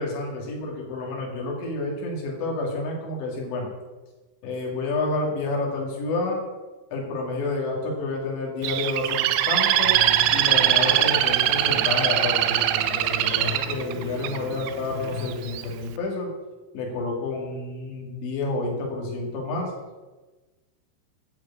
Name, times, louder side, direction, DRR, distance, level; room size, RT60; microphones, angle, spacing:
voice 1, 0.0-3.7 4.4-6.4 6.9-10.0 10.3-16.3 16.7-19.7, left 2 dB, 75° left, -1 dB, 4.4 m, -29 dB
Bird, 8.6-14.7 15.3-15.7, right 13 dB, 85° right, 2.8 m, -22 dB
sound 1, 9.8-15.3, left 3 dB, 60° right, 2.5 m, -37 dB
11.0 x 4.8 x 8.3 m, 1.2 s
omnidirectional pair, 5.2 m